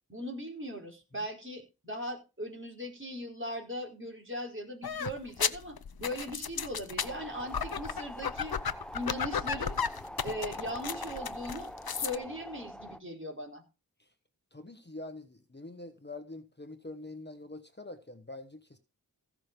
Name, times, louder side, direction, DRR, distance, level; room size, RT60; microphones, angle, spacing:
voice 1, 0.1-8.6 8.9-9.8 10.2-13.6, equal, 35° right, 4.5 m, -39 dB
sound 1, 4.8-12.2, left 7 dB, 85° left, 0.7 m, -34 dB
sound 2, 7.0-13.0, equal, 5° left, 0.9 m, -44 dB
voice 2, 14.5-18.8, left 2 dB, 30° left, 1.2 m, -45 dB
15.5 x 6.2 x 5.3 m
wide cardioid pair, 50°, 36 cm